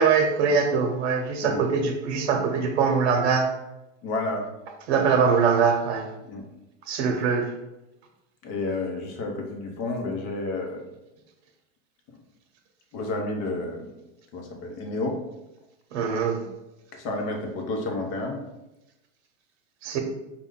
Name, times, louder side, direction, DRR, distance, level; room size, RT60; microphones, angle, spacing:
voice 1, 0.0-3.5 4.9-6.1 6.9-7.5 15.9-16.4 19.8-20.0, right 5 dB, 60° right, 4 dB, 1.0 m, -22 dB
voice 2, 4.0-4.5 6.2-6.4 8.4-10.8 12.9-13.8 14.3-15.2 16.9-18.4, left 2 dB, 35° left, 2 dB, 0.8 m, -30 dB
5.2 x 2.3 x 3.7 m, 0.96 s
supercardioid pair, 145°, 37 cm